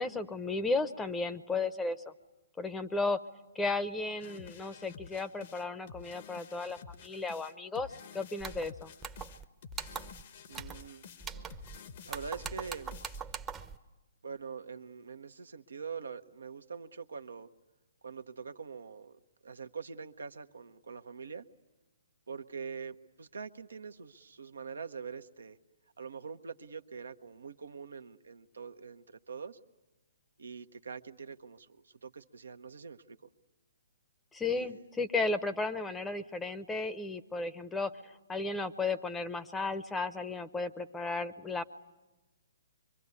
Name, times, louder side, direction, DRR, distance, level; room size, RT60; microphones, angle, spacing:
voice 1, 0.0-2.1 2.6-3.2 3.5-8.9 34.3-41.6, left 3 dB, 10° left, 11 dB, 0.9 m, -34 dB
sound 1, 4.2-13.2, left 6 dB, 50° left, 1.1 m, -51 dB
sound 2, 8.4-8.7 9.0-9.4 9.7-10.2 10.5-10.9 11.2-11.8 12.1-13.8, right 6 dB, 15° right, 0.9 m, -42 dB
voice 2, 10.5-11.0 12.0-13.0 14.2-17.5 18.0-21.4 22.3-25.6 26.0-29.6 30.4-33.2 34.5-34.8, right 5 dB, 75° right, 8 dB, 1.0 m, -44 dB
24.5 x 23.5 x 9.6 m, 1.1 s
figure-of-eight pair, 130°, 0 cm